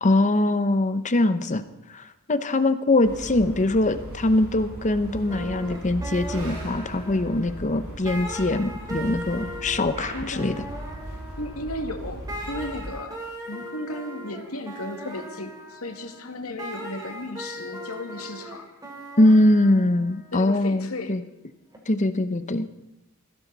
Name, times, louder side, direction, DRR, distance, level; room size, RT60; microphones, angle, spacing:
voice 1, 0.0-1.6 1.9-10.6 19.2-21.2 21.9-22.7, left 2 dB, 35° left, 11 dB, 0.8 m, -22 dB
sound 1, 3.0-12.9, right 1 dB, 70° right, 7.0 m, -38 dB
sound 2, 5.3-7.8 8.0-12.0 12.3-20.4 21.7-21.8, equal, 15° right, 3.1 m, -39 dB
voice 2, 10.1-10.5 11.4-13.2 13.5-18.7 20.3-21.2, left 1 dB, 70° left, 5 dB, 2.0 m, -35 dB
21.5 x 16.0 x 4.0 m, 0.91 s
head